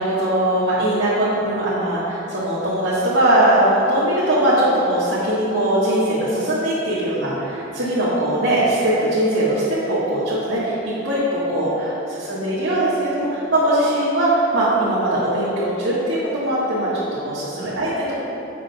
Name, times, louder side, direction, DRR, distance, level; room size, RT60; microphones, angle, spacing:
voice 1, 0.0-18.1, right 1 dB, 75° right, -11 dB, 1.9 m, -20 dB
11.5 x 8.1 x 2.5 m, 2.8 s
head